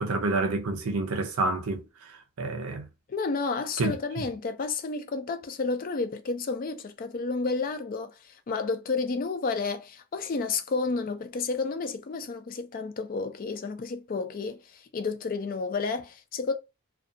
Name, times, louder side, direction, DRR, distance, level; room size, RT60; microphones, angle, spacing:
voice 1, 0.0-2.9 3.8-4.3, right 3 dB, 70° right, 0.6 m, -29 dB
voice 2, 3.1-16.5, left 4 dB, 40° left, 0.3 m, -31 dB
2.6 x 2.3 x 2.4 m
head